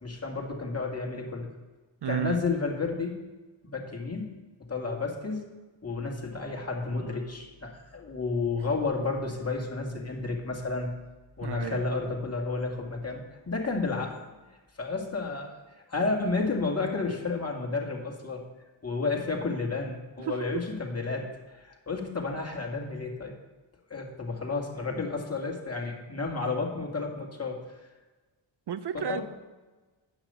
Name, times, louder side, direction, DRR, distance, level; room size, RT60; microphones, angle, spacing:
voice 1, 0.0-1.5 2.0-3.2 3.6-4.3 4.7-5.4 5.8-10.9 11.4-14.1 14.8-15.5 15.9-18.4 18.8-23.3 23.9-27.8 28.9-29.2, left 3 dB, 30° left, 0 dB, 2.1 m, -31 dB
voice 2, 2.0-2.4 11.4-11.8 20.2-20.4 28.7-29.2, right 9 dB, 60° right, 13 dB, 0.5 m, -32 dB
9.6 x 5.9 x 5.5 m, 1.2 s
cardioid pair, 50°, 48 cm